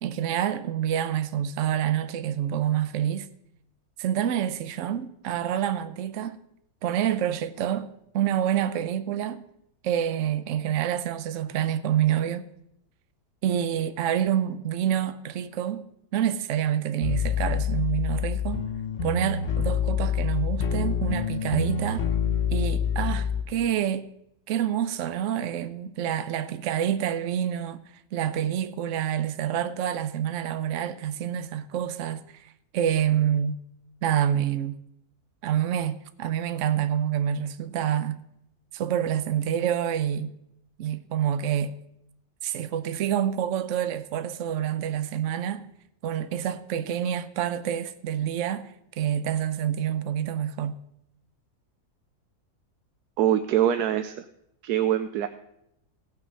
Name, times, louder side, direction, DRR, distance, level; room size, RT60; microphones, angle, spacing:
voice 1, 0.0-3.3 4.0-6.4 6.8-7.9 8.1-9.4 9.8-12.5 13.4-18.7 19.0-22.1 22.5-24.1 24.5-27.8 28.1-33.6 34.0-34.8 35.4-38.2 38.7-40.3 40.8-41.7 42.4-45.7 46.0-50.8, right 10 dB, 60° right, 0.9 m, -27 dB
sound 1, 17.0-23.4, left 7 dB, 50° left, 1.2 m, -27 dB
voice 2, 53.2-54.2 54.6-55.3, right 10 dB, 85° right, 1.2 m, -23 dB
18.0 x 6.1 x 5.3 m
omnidirectional pair, 1.7 m